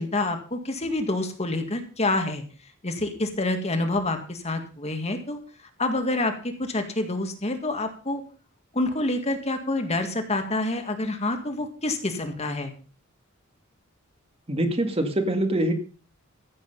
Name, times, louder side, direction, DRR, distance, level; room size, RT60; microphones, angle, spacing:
voice 1, 0.0-2.4 2.8-5.4 5.8-8.2 8.7-12.7, left 2 dB, 30° left, 6 dB, 1.9 m, -27 dB
voice 2, 14.5-15.7, right 1 dB, 30° right, 6 dB, 2.0 m, -24 dB
14.5 x 8.1 x 5.4 m, 0.38 s
head